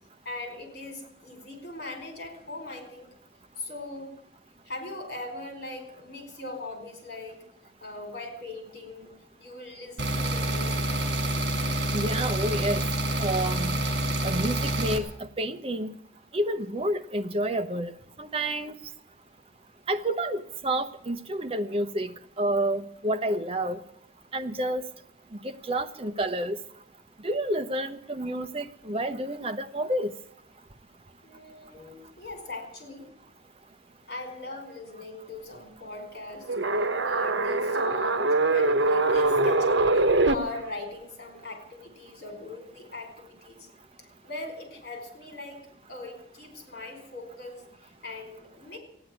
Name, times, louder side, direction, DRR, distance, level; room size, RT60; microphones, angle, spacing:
voice 1, 0.2-3.1 3.6-4.2 4.6-7.4 7.8-9.1 9.4-11.1 31.2-33.1 34.1-36.5 37.0-43.7 44.0-45.6 45.9-48.8, left 2 dB, 55° left, 4 dB, 5.0 m, -40 dB
sound 1, 10.0-15.0, right 1 dB, 60° right, 2.7 m, -27 dB
voice 2, 11.9-12.8 13.2-13.8 14.2-15.9 16.3-17.9 18.2-18.7 19.9-23.8 24.3-24.8 25.4-26.6 27.2-30.1, right 1 dB, 30° right, 9 dB, 0.8 m, -29 dB
sound 2, 36.5-40.3, right 2 dB, 80° right, 1.0 m, -23 dB
15.0 x 10.0 x 9.2 m, 0.74 s
head